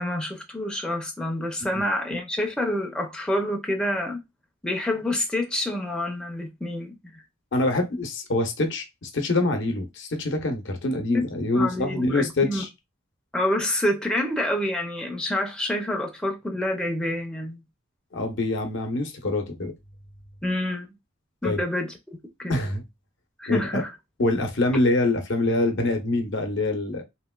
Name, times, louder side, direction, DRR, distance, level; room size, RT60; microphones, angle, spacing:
voice 1, 0.0-4.2 4.6-7.2 11.1-11.3 11.5-12.6 13.3-17.6 20.4-20.9 21.4-22.7 23.4-23.9, left 1 dB, 5° left, 0.5 m, -27 dB
voice 2, 7.5-12.7 18.1-19.7 21.4-21.6 22.5-22.8 23.5-23.8 24.2-27.0, left 2 dB, 60° left, 0.7 m, -25 dB
2.9 x 2.9 x 2.2 m
head